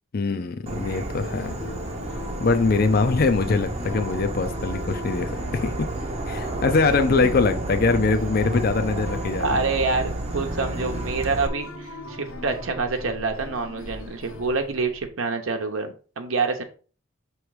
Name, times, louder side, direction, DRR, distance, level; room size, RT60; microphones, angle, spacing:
voice 1, 0.1-1.6 2.4-5.7 6.3-9.5, left 4 dB, 45° left, 8 dB, 0.5 m, -22 dB
Insect / Frog, 0.7-11.5, right 2 dB, 30° right, 0.8 m, -31 dB
sound 1, 1.2-15.1, left 1 dB, 85° left, 1.3 m, -39 dB
voice 2, 9.4-16.6, right 4 dB, 75° right, 5 dB, 0.9 m, -27 dB
6.1 x 3.2 x 4.8 m, 0.38 s
head